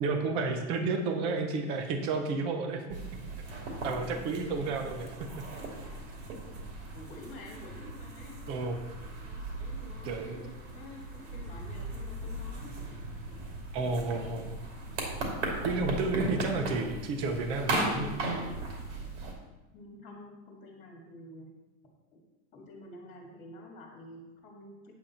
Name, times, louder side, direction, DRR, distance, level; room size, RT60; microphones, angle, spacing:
voice 1, 0.0-3.0 3.5-5.1 5.6-5.7 8.5-8.8 10.0-10.4 13.7-14.5 15.6-18.1, right 3 dB, 15° right, 5 dB, 0.3 m, -31 dB
sound 1, 2.9-19.3, right 2 dB, 60° right, 2.8 m, -37 dB
voice 2, 6.9-8.4 9.3-12.8 19.7-21.5 22.1-22.2 22.5-24.9, left 1 dB, 20° left, 0 dB, 1.9 m, -49 dB
8.6 x 7.9 x 4.2 m, 1.1 s
supercardioid pair, 170°, 40 cm